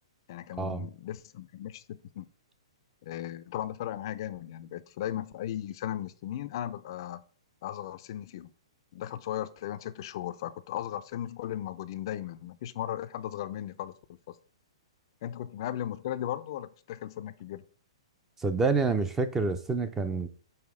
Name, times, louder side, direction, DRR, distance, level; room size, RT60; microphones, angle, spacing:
voice 1, 0.3-2.3 3.0-7.2 7.6-8.5 8.9-13.9 14.3-14.4 15.2-17.6, left 11 dB, 50° left, 0.5 m, -36 dB
voice 2, 18.4-20.3, right 4 dB, 10° right, 0.5 m, -27 dB
5.7 x 4.1 x 4.9 m
hypercardioid pair, 145°, 3 cm